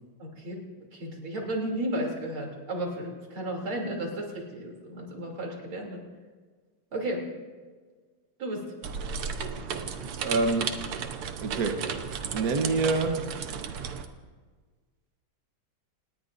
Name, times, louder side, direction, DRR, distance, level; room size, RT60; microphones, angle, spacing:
voice 1, 0.2-0.6 0.9-6.0 6.9-7.2 8.4-8.6, right 1 dB, 70° right, 0 dB, 4.0 m, -33 dB
sound 1, 8.8-14.1, right 6 dB, 85° right, 2.0 m, -34 dB
voice 2, 10.2-10.8 11.4-11.9 12.3-13.3, right 3 dB, 50° right, 4 dB, 1.4 m, -27 dB
28.0 x 18.5 x 2.6 m, 1.5 s
omnidirectional pair, 2.4 m